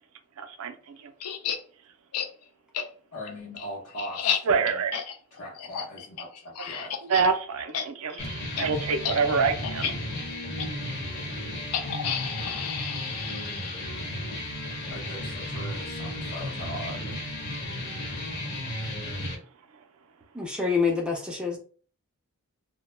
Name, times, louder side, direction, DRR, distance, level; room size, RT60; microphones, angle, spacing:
voice 1, 0.4-1.1 4.4-5.0 7.0-10.1 18.9-19.0, right 5 dB, 75° right, 0.4 m, -27 dB
sound 1, 1.2-1.6 2.1-2.3 2.7-2.8 3.3-7.3 7.6-7.8 8.1-8.3 8.6-8.7 9.0-9.2 9.6-9.9 10.6-10.7 11.7-14.1, left 8 dB, 90° left, 0.4 m, -32 dB
voice 2, 3.1-4.6 5.3-6.9 7.2-7.3 14.9-17.2, equal, 70° left, 0.7 m, -40 dB
sound 2, 8.2-19.3, left 1 dB, 50° left, 1.0 m, -34 dB
voice 3, 20.4-21.6, left 5 dB, 5° right, 0.3 m, -26 dB
2.1 x 2.1 x 3.0 m
head